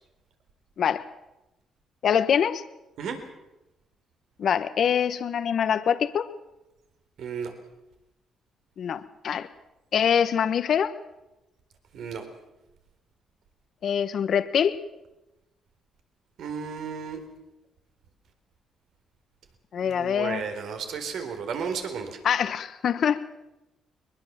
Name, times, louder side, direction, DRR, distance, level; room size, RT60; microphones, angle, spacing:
voice 1, 2.0-2.6 4.4-6.3 8.8-9.5 9.9-10.9 13.8-14.8 19.7-20.4 22.2-23.2, left 8 dB, 60° left, 12 dB, 1.2 m, -24 dB
voice 2, 7.2-7.5 11.9-12.3 16.4-17.2 19.8-22.2, right 6 dB, 75° right, 6 dB, 3.8 m, -33 dB
22.0 x 21.5 x 7.4 m, 0.95 s
cardioid pair, 90°, 0 cm